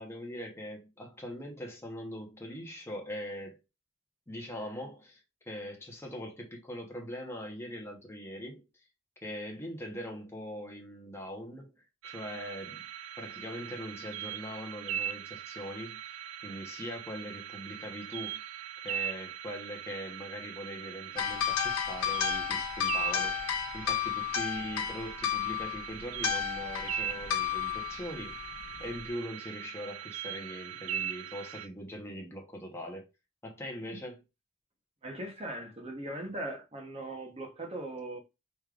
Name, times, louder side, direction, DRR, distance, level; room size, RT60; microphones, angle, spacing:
voice 1, 0.0-3.6 4.3-5.2 5.5-8.6 9.2-11.7 12.0-12.8 13.2-16.0 16.4-18.4 18.8-28.4 28.8-33.1 33.4-34.2, equal, 10° left, 1.0 m, -41 dB
sound 1, 12.0-31.7, right 10 dB, 80° right, 0.4 m, -40 dB
sound 2, 21.2-29.1, left 9 dB, 80° left, 0.8 m, -33 dB
voice 2, 35.0-38.2, right 1 dB, 30° right, 1.0 m, -39 dB
5.3 x 3.3 x 2.5 m
head